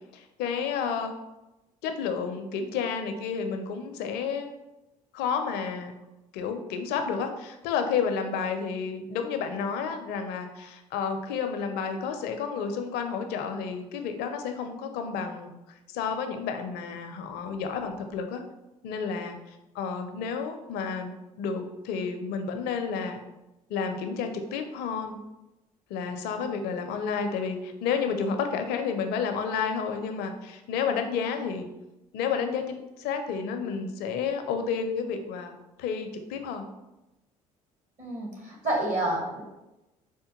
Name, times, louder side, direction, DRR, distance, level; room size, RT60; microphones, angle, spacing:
voice 1, 0.1-1.1 1.8-4.5 5.1-5.9 6.3-15.5 15.9-18.4 18.8-19.4 19.7-21.1 21.4-23.2 23.7-25.2 25.9-31.7 32.1-36.7, left 6 dB, 70° left, 6 dB, 0.5 m, -31 dB
voice 2, 38.0-39.4, right 1 dB, 50° right, 0 dB, 1.3 m, -29 dB
4.2 x 2.2 x 2.9 m, 0.97 s
hypercardioid pair, 60°, 17 cm